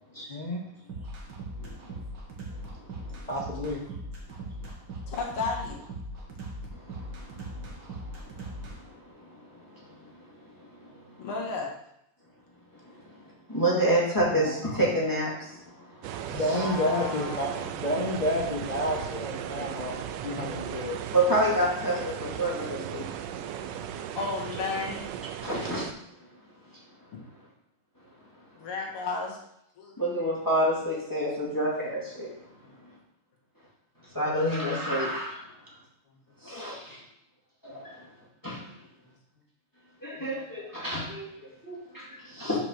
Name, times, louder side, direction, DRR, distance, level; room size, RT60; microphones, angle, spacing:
sound 1, 0.9-8.8, right 1 dB, 55° right, 1.9 m, -39 dB
voice 1, 1.6-2.0 2.5-3.2 6.7-11.3 12.8-16.6 21.1-23.1 25.4-25.8 26.7-26.8 30.0-32.3 34.0-35.5 36.4-37.0 37.6-38.1 38.4-38.6 40.0-42.6, right 1 dB, 10° left, -5 dB, 1.8 m, -30 dB
voice 2, 3.3-3.8 14.3-14.6 16.3-17.5 17.8-19.9 20.2-21.0 21.3-21.4 22.0-22.1, left 1 dB, 30° left, -2 dB, 0.8 m, -30 dB
voice 3, 5.1-5.8 11.2-11.7 16.5-17.8 20.2-20.5 24.2-25.0 28.6-29.4 29.8-30.0 36.4-37.0, left 4 dB, 85° left, 0 dB, 2.5 m, -34 dB
sound 2, 16.0-25.9, right 9 dB, 75° right, 1.1 m, -36 dB
5.8 x 5.3 x 6.4 m, 0.77 s
omnidirectional pair, 2.3 m